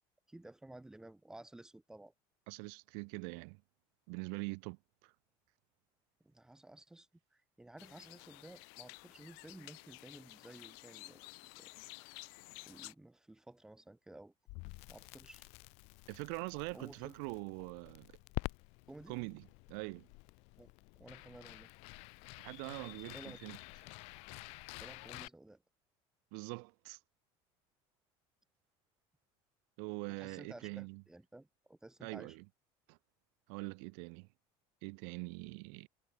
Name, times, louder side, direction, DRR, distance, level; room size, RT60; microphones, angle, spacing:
voice 1, 0.3-2.1 6.2-11.7 12.6-14.3 14.9-15.5 16.7-17.1 18.9-19.2 20.6-21.7 22.9-23.4 24.8-25.6 30.1-32.4, right 1 dB, 5° right, 4.2 m, -54 dB
voice 2, 2.5-3.6 4.1-5.1 16.1-18.2 19.1-20.1 22.4-23.6 26.3-27.0 29.8-31.0 32.0-32.4 32.9-33.0 33.5-34.3 34.8-35.9, right 40 dB or more, 80° right, 1.2 m, -43 dB
sound 1, 7.8-12.9, left 40 dB or more, 85° left, 3.4 m, -53 dB
Crackle, 14.5-25.3, left 29 dB, 65° left, 1.4 m, -49 dB
cardioid pair, 170°, 12 cm